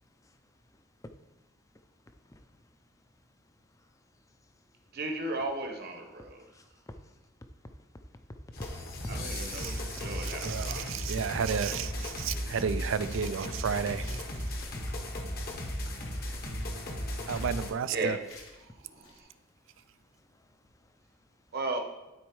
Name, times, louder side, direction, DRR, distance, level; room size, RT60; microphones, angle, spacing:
voice 1, 2.2-2.8 3.8-3.9 4.4-4.5 6.4-7.2 7.9-8.7 9.0-9.1 12.2-12.4 15.3-15.4 16.2-16.3 20.2-21.0, left 1 dB, 15° left, 0.5 m, -49 dB
voice 2, 4.9-6.4 9.1-11.0 17.9-18.2 18.7-19.3 21.5-21.8, right 2 dB, 50° right, 1.0 m, -36 dB
sound 1, 8.5-17.7, left 1 dB, 45° left, 1.0 m, -36 dB
voice 3, 9.5-14.2 17.3-18.2, right 6 dB, 65° right, 0.4 m, -32 dB
sound 2, 13.1-15.1 15.4-16.7 17.1-17.7 18.2-18.6 18.9-19.2, left 2 dB, 80° left, 1.4 m, -54 dB
12.5 x 4.2 x 3.1 m
head